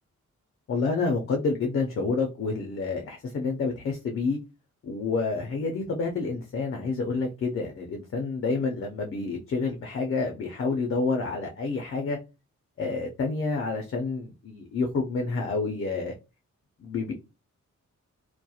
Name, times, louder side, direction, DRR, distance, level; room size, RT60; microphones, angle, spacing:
voice 1, 0.7-4.4 4.8-12.2 12.8-16.1 16.8-17.1, left 4 dB, 45° left, 0.4 m, -28 dB
2.3 x 2.0 x 2.7 m
wide cardioid pair, 155°, 30 cm